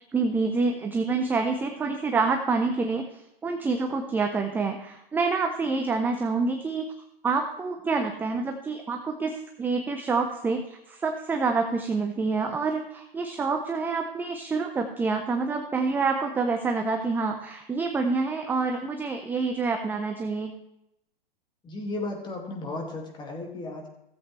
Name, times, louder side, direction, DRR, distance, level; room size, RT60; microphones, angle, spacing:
voice 1, 0.1-6.9 7.2-20.5, right 4 dB, 5° right, 4 dB, 0.5 m, -27 dB
voice 2, 21.6-23.9, left 2 dB, 15° left, 1 dB, 2.1 m, -34 dB
16.0 x 7.9 x 3.2 m, 0.85 s
hypercardioid pair, 125°, 30 cm